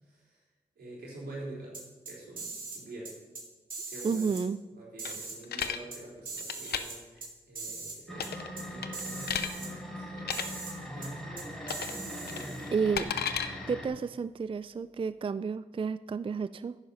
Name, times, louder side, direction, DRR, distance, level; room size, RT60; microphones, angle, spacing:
voice 1, 0.0-0.4 0.8-1.8 2.1-3.1 3.9-4.3 4.8-11.2 11.5-12.7, right 2 dB, 90° right, -5 dB, 3.9 m, -47 dB
sound 1, 1.7-2.8 3.1-3.4 3.7-4.4 5.0-6.0 6.3-7.3 7.6-8.0 8.2-8.3 8.6-8.7 8.9-9.7 10.3-10.7 11.0-11.1 11.4-12.7, right 4 dB, 60° right, 2.8 m, -41 dB
voice 2, 4.0-4.6 12.7-13.1 13.7-16.8, right 5 dB, 35° right, 15 dB, 0.4 m, -31 dB
sound 2, 5.1-5.8 6.4-6.8 8.1-8.5 8.8-9.5 10.2-10.4 11.7-12.0 12.3-13.5, left 8 dB, 90° left, 0.5 m, -33 dB
sound 3, 8.1-13.9, equal, ahead, 4.2 m, -41 dB
10.0 x 8.9 x 5.4 m, 1.2 s
cardioid pair, 40°, 16 cm